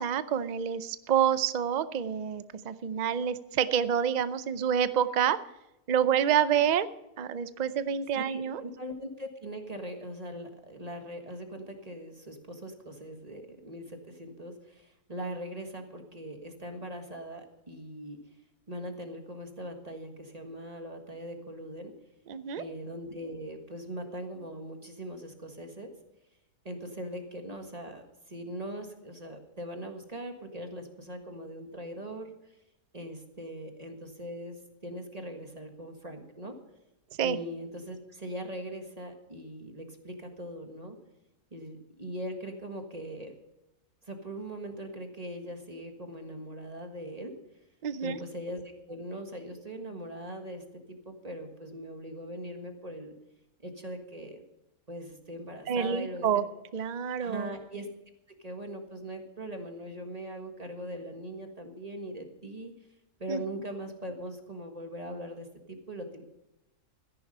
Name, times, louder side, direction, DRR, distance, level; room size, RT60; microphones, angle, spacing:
voice 1, 0.0-5.4 5.9-6.9 7.2-8.6 22.3-22.6 37.2-37.4 47.8-48.2 55.7-56.4 56.7-57.5 63.3-63.4, right 8 dB, 85° right, 13 dB, 0.3 m, -28 dB
voice 2, 8.1-18.2 18.7-21.9 22.6-25.9 26.6-32.3 32.9-34.6 34.8-36.6 37.2-41.0 41.5-43.3 44.1-47.3 48.0-53.1 53.6-54.4 54.9-56.3 57.2-57.9 58.4-62.7 63.2-66.2, equal, 25° right, 4 dB, 1.6 m, -41 dB
14.0 x 10.5 x 5.5 m, 0.91 s
omnidirectional pair, 1.6 m